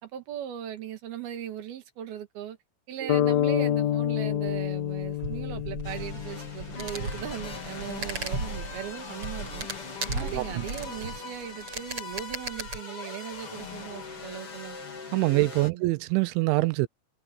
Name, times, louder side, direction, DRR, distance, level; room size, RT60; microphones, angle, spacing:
voice 1, 0.0-2.6 2.9-9.7 10.1-14.8 15.7-15.9, right 10 dB, 60° right, 3.4 m, -38 dB
sound 1, 3.1-7.0, left 12 dB, 80° left, 2.2 m, -28 dB
sound 2, 4.2-12.8, right 2 dB, 30° right, 7.6 m, -36 dB
sound 3, 5.8-15.7, left 4 dB, 30° left, 3.6 m, -41 dB
voice 2, 10.2-10.6 15.1-16.9, right 21 dB, 80° right, 2.9 m, -25 dB
omnidirectional pair, 5.6 m